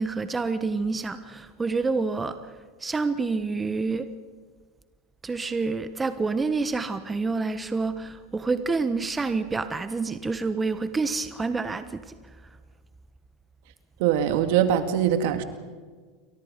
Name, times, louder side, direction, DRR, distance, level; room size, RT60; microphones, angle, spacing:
voice 1, 0.0-2.5 2.8-4.1 5.2-12.1, right 4 dB, 20° right, 11 dB, 1.3 m, -28 dB
voice 2, 14.0-15.4, right 9 dB, 65° right, 9 dB, 2.2 m, -22 dB
29.5 x 23.0 x 5.4 m, 1.5 s
hypercardioid pair, 90°, 0 cm